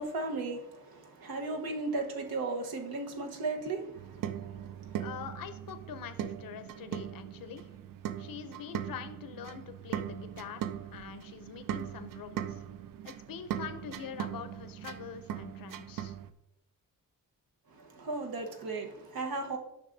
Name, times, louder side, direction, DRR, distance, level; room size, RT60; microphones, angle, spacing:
voice 1, 0.0-5.0 17.7-19.6, right 3 dB, 90° right, 1.2 m, -36 dB
sound 1, 4.0-16.3, right 10 dB, 65° right, 0.5 m, -40 dB
voice 2, 5.0-7.7 8.2-10.6 10.9-12.6 13.0-16.2, left 8 dB, 70° left, 0.7 m, -44 dB
9.5 x 6.2 x 2.7 m
wide cardioid pair, 145°, 35 cm